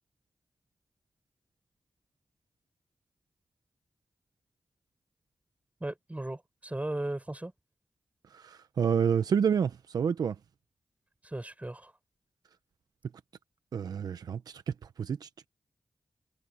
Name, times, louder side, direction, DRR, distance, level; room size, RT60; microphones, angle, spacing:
voice 1, 5.8-7.5 11.2-11.9, right 1 dB, 20° right, 6.8 m, -36 dB
voice 2, 8.3-10.4 13.7-14.6 15.0-15.5, right 7 dB, 85° right, 0.9 m, -29 dB
cardioid pair, 40°, 6 cm